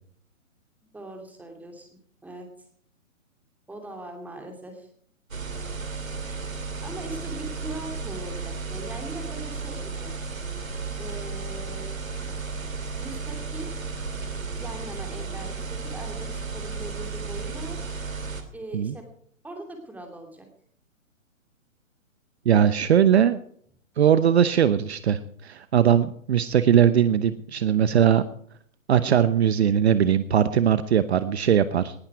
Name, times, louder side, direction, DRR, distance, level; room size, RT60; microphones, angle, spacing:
voice 1, 0.9-1.9 2.2-2.5 3.7-4.9 6.8-10.2 11.0-11.9 13.0-13.8 14.4-17.9 18.5-19.1 19.4-20.5, right 2 dB, 5° right, 3 dB, 2.6 m, -40 dB
sound 1, 5.3-18.4, right 4 dB, 80° right, 2.8 m, -34 dB
voice 2, 22.4-23.4 24.0-28.2 28.9-31.9, right 9 dB, 55° right, 13 dB, 0.9 m, -20 dB
19.0 x 11.5 x 4.7 m, 0.62 s
figure-of-eight pair, 135°, 40 cm